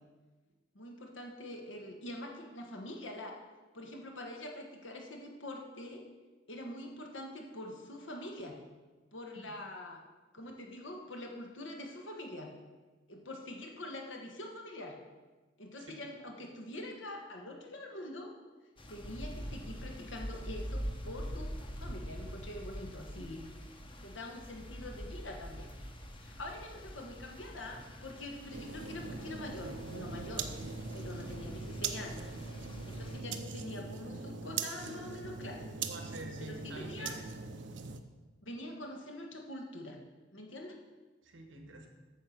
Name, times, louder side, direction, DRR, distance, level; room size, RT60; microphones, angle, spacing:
voice 1, 0.7-3.4 3.7-6.0 6.5-8.6 9.1-10.0 10.3-12.5 13.1-15.0 15.6-18.3 18.9-21.5 21.8-23.5 24.0-25.7 26.1-30.5 30.9-32.3 32.8-35.6 36.4-37.2 38.4-40.0 40.3-40.8, left 1 dB, 80° left, 2 dB, 1.6 m, -44 dB
sound 1, 18.8-33.2, equal, 25° left, 1.0 m, -44 dB
sound 2, 28.5-38.0, right 5 dB, 70° right, 0.7 m, -41 dB
voice 2, 35.8-37.1 41.2-41.9, right 2 dB, 85° right, 4 dB, 1.3 m, -47 dB
8.9 x 6.8 x 5.9 m, 1.3 s
head